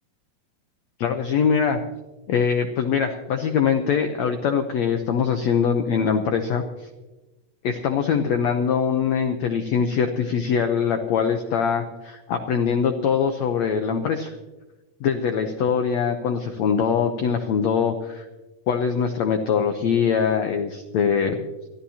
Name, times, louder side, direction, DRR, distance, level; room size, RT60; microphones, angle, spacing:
voice 1, 1.0-1.8 2.3-6.6 7.6-14.3 15.0-18.2 18.7-21.4, left 6 dB, 85° left, 6 dB, 1.5 m, -23 dB
25.0 x 14.5 x 2.9 m, 1.1 s
omnidirectional pair, 4.4 m